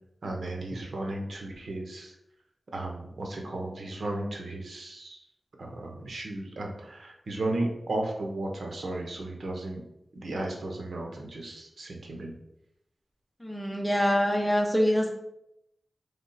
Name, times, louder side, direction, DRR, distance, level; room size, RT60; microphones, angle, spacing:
voice 1, 0.2-2.1 2.7-5.2 5.6-9.8 10.1-12.3, right 2 dB, 90° right, 1 dB, 0.9 m, -34 dB
voice 2, 13.4-15.1, equal, 10° left, 0 dB, 1.0 m, -25 dB
3.6 x 3.5 x 4.2 m, 0.82 s
wide cardioid pair, 85°, 0 cm